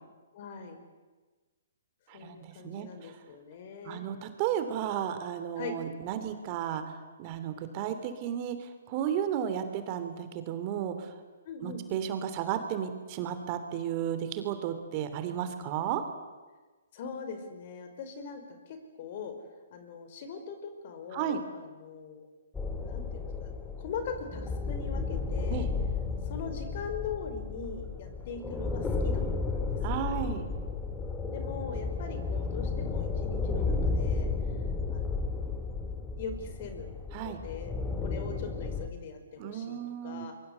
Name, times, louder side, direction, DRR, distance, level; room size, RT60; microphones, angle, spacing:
voice 1, 0.3-0.8 2.1-4.0 5.6-5.7 11.4-11.8 16.9-19.3 19.7-22.3 22.8-23.5 23.8-25.7 26.2-30.1 31.3-34.3 34.9-35.4 36.2-36.9 37.2-37.7 38.0-40.3, left 5 dB, 50° left, 8 dB, 5.1 m, -41 dB
voice 2, 2.1-3.2 3.8-6.8 7.2-11.1 11.6-16.0 21.1-21.4 25.5-25.7 29.8-30.5 37.1-37.4 39.4-40.3, right 9 dB, 35° right, 9 dB, 3.0 m, -33 dB
sound 1, 22.5-38.9, left 4 dB, 10° left, 2.6 m, -33 dB
24.5 x 23.0 x 8.2 m, 1.3 s
hypercardioid pair, 135°, 0 cm